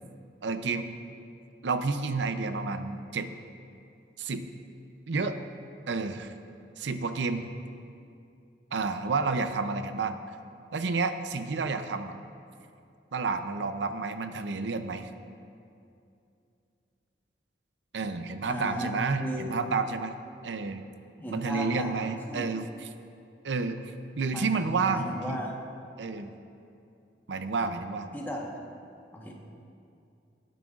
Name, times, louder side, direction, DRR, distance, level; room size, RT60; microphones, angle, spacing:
voice 1, 0.4-0.9 1.6-3.3 4.2-4.4 5.1-5.4 5.9-6.3 6.8-7.4 8.7-10.2 10.7-12.1 13.1-15.1 17.9-20.1 20.4-20.8 21.3-22.9 23.4-23.8 24.2-25.4 26.0-26.3 27.3-28.1, right 4 dB, 80° right, 9 dB, 0.6 m, -30 dB
voice 2, 18.5-19.6 21.2-22.5 24.3-25.6 27.6-27.7 28.1-28.4 29.1-29.4, equal, 10° left, -1 dB, 1.1 m, -36 dB
18.0 x 9.1 x 2.5 m, 2.5 s
head